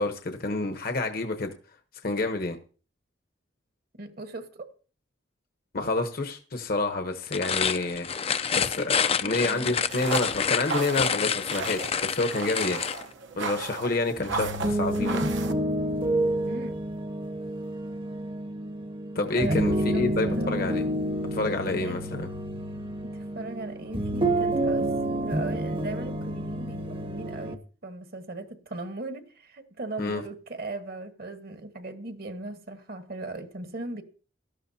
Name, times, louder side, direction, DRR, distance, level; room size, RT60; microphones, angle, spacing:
voice 1, 0.0-1.5 2.0-2.6 5.7-8.1 8.5-8.9 9.2-12.8 13.4-15.2 19.1-20.9 21.3-22.3 30.0-30.2, left 2 dB, 50° left, 1.0 m, -28 dB
voice 2, 3.9-4.7 9.2-9.7 16.4-16.8 19.3-20.5 21.6-22.0 23.0-24.9 25.2-34.0, right 2 dB, 55° right, 1.3 m, -38 dB
sound 1, 7.2-13.0, left 7 dB, 30° left, 0.5 m, -28 dB
sound 2, 9.9-15.5, right 4 dB, 70° right, 0.9 m, -35 dB
sound 3, 14.2-27.5, right 1 dB, 30° right, 0.9 m, -29 dB
17.0 x 12.5 x 2.8 m
head